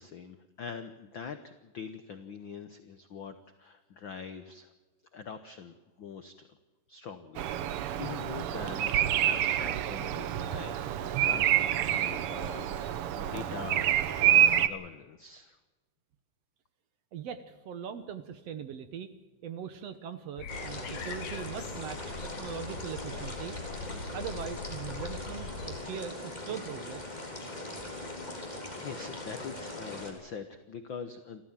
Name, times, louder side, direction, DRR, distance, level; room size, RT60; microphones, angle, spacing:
voice 1, 0.0-4.7 5.1-6.5 6.9-8.9 9.2-13.9 14.2-15.6 28.8-31.4, left 6 dB, 80° left, 9 dB, 1.0 m, -44 dB
Bird vocalization bird call bird song, 7.4-14.7, right 11 dB, 80° right, 1.2 m, -27 dB
voice 2, 17.1-19.1 19.4-23.6 24.1-27.0, right 8 dB, 65° right, 11 dB, 1.8 m, -40 dB
sound 1, 20.4-25.8, left 4 dB, 60° left, 2.8 m, -42 dB
sound 2, 20.5-30.1, left 1 dB, 15° left, 3.6 m, -41 dB
29.0 x 14.0 x 7.4 m, 1.3 s
omnidirectional pair, 3.7 m